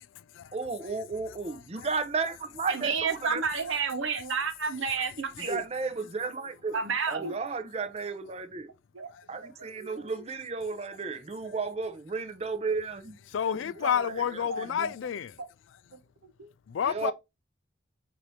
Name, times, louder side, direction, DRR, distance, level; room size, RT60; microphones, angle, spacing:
voice 1, 0.5-3.4 5.4-6.8 7.1-8.7 9.3-13.2 13.5-14.9 16.8-17.1, right 4 dB, 35° right, 0.5 m, -34 dB
voice 2, 2.7-5.6 6.7-7.3 8.9-9.1 9.4-10.1 13.4-14.9 15.4-15.5 16.4-16.5, right 5 dB, 85° right, 1.0 m, -32 dB
voice 3, 13.3-15.3 16.7-17.1, left 8 dB, 80° left, 0.4 m, -29 dB
5.8 x 2.7 x 3.1 m
head